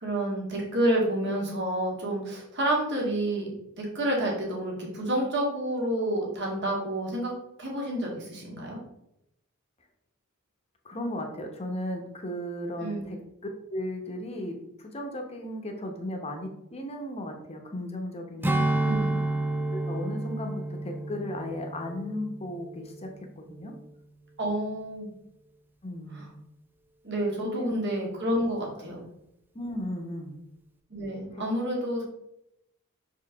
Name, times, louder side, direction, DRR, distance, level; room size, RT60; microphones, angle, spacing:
voice 1, 0.0-3.5 3.8-7.3 7.6-8.8 12.8-13.0 18.8-19.3 24.4-25.1 26.1-26.2 27.0-29.1 30.9-32.0, right 1 dB, 55° right, -1 dB, 1.8 m, -29 dB
voice 2, 10.8-13.2 13.7-19.0 19.7-23.1 23.4-23.7 25.8-26.4 27.4-27.8 28.8-28.9 29.5-30.4 31.3-31.4, left 1 dB, 30° left, 3 dB, 0.9 m, -36 dB
Strum, 18.4-23.1 23.5-23.7, right 2 dB, 10° right, 0.5 m, -30 dB
5.8 x 4.8 x 3.4 m, 0.82 s
head